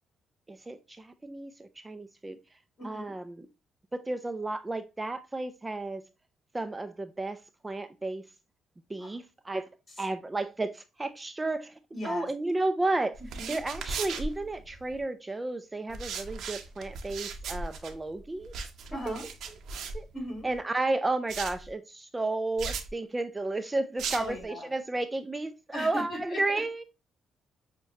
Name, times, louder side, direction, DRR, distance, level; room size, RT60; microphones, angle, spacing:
voice 1, 0.5-2.4 2.8-3.5 3.9-6.0 6.5-8.2 8.9-9.7 10.0-11.7 12.0-13.2 13.5-18.5 19.1-19.2 19.9-20.1 20.4-26.8, right 2 dB, 20° right, 0.3 m, -32 dB
voice 2, 2.8-3.1 9.0-9.2 10.0-10.1 11.9-12.3 13.3-13.6 18.9-19.3 20.1-20.5 24.1-24.7 25.7-26.6, left 1 dB, 35° left, 2.2 m, -37 dB
sound 1, 13.1-15.0 15.9-20.6 21.3-21.7 22.6-22.9 24.0-24.4, right 5 dB, 75° right, 0.6 m, -37 dB
6.1 x 2.1 x 2.7 m
cardioid pair, 90°, 0 cm